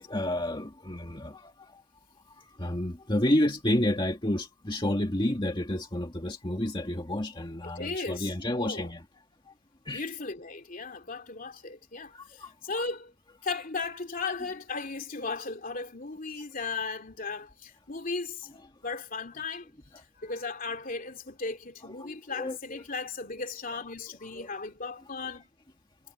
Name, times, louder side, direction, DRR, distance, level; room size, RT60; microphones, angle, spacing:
voice 1, 0.0-1.5 2.6-9.0 9.9-10.0 12.1-12.9 21.8-22.8 23.7-23.9 24.3-24.5, left 1 dB, 25° left, 1.9 m, -30 dB
voice 2, 7.6-8.9 9.9-13.1 13.4-19.7 20.0-25.5, left 4 dB, 45° left, 2.9 m, -36 dB
head